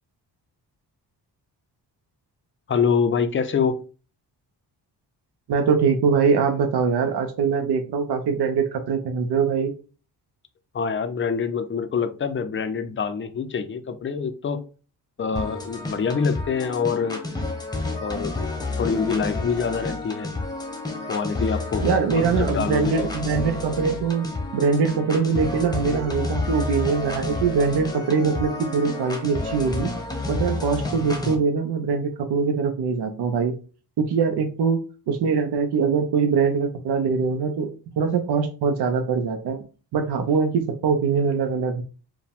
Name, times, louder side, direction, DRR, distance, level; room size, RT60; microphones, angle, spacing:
voice 1, 2.7-3.8 10.7-14.6 15.2-17.3 18.0-18.3 18.8-20.3 21.1-21.8 22.1-23.1, left 6 dB, 30° left, 0.5 m, -25 dB
voice 2, 5.5-9.7 21.8-24.3 24.5-29.9 30.3-33.6 34.0-34.8 35.1-39.6 39.9-41.8, right 5 dB, 70° right, 0.7 m, -23 dB
sound 1, 15.4-31.4, left 2 dB, 10° left, 0.8 m, -30 dB
4.7 x 2.2 x 3.5 m
cardioid pair, 110°, 41 cm